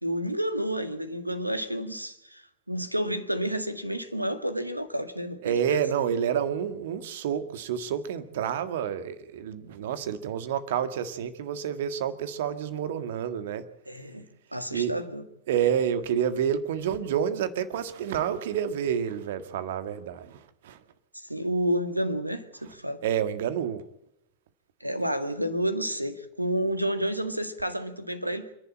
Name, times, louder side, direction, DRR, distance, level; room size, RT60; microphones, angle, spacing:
voice 1, 0.0-5.9 13.9-14.3 14.5-15.2 21.1-23.0 24.8-28.5, equal, 85° right, 1.8 m, -30 dB
voice 2, 5.4-13.6 14.7-15.0 15.5-20.8 23.0-23.8, right 8 dB, 55° right, 1.8 m, -29 dB
28.0 x 11.0 x 8.7 m
figure-of-eight pair, 90°, 0 cm